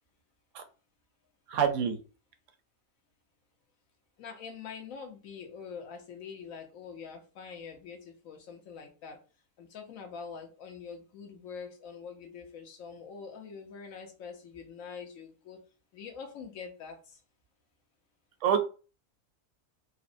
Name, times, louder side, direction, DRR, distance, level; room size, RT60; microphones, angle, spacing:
voice 1, 1.5-2.0 18.4-18.6, right 8 dB, 65° right, 0.8 m, -26 dB
voice 2, 4.2-9.2 9.6-15.6 15.9-17.2, left 6 dB, 65° left, 1.1 m, -44 dB
3.8 x 2.1 x 2.5 m
omnidirectional pair, 1.6 m